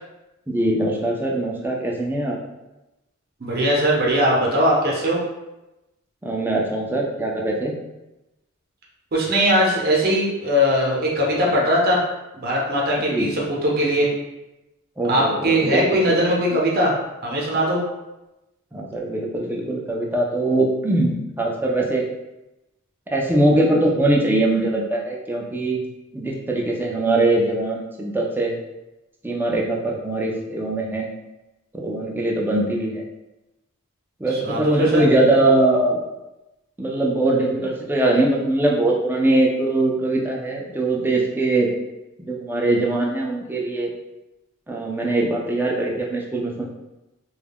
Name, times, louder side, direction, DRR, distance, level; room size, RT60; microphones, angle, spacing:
voice 1, 0.5-2.3 6.2-7.8 13.1-13.3 15.0-16.0 18.7-21.1 21.4-22.0 23.1-25.8 26.1-28.5 29.2-31.1 31.7-33.0 34.2-36.0 36.8-41.7 42.3-43.9 44.7-46.6, right 2 dB, 10° right, -2 dB, 0.3 m, -21 dB
voice 2, 3.4-5.2 9.1-12.0 12.3-14.1 15.1-16.9 17.2-17.8 34.3-35.0, equal, 45° right, -3 dB, 0.6 m, -20 dB
2.2 x 2.1 x 3.4 m, 0.99 s
head